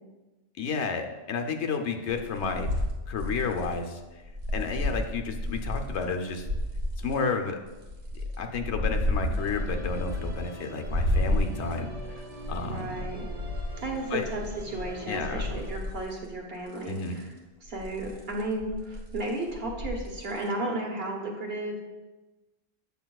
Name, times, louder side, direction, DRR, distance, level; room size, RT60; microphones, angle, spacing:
voice 1, 0.6-2.7 3.1-4.0 4.5-6.5 7.0-7.6 8.1-12.9 14.1-14.2 15.1-15.5 16.9-17.2, left 5 dB, 85° left, 5 dB, 1.0 m, -31 dB
sound 1, 2.1-6.0 6.4-7.1 7.7-10.6 10.8-16.4 16.7-17.2 17.7-20.5, left 1 dB, 85° right, 1.5 m, -32 dB
Musical instrument, 9.4-15.8, right 3 dB, 40° right, 0.7 m, -44 dB
voice 2, 12.6-13.2 13.5-17.3 17.6-21.8, right 2 dB, 65° right, 0 dB, 1.4 m, -34 dB
8.3 x 7.0 x 2.3 m, 1.1 s
omnidirectional pair, 1.1 m